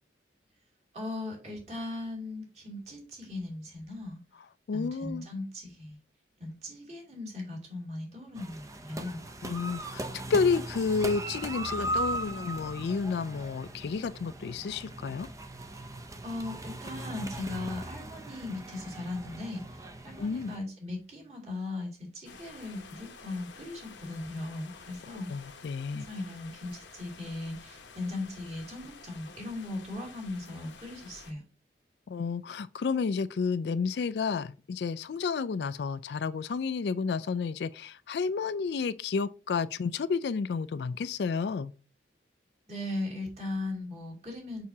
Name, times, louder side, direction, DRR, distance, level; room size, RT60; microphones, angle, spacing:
voice 1, 0.9-4.2 4.7-6.0 6.4-9.2 16.2-25.3 25.9-31.4 42.7-44.6, left 2 dB, 35° right, 2.7 m, -38 dB
voice 2, 4.7-5.3 9.4-15.3 20.2-20.5 25.3-26.1 32.1-41.7, left 5 dB, 65° left, 0.4 m, -31 dB
sound 1, 8.4-20.6, right 1 dB, 15° right, 0.6 m, -38 dB
sound 2, 22.2-31.3, left 5 dB, 85° left, 0.9 m, -51 dB
6.5 x 5.9 x 2.7 m
head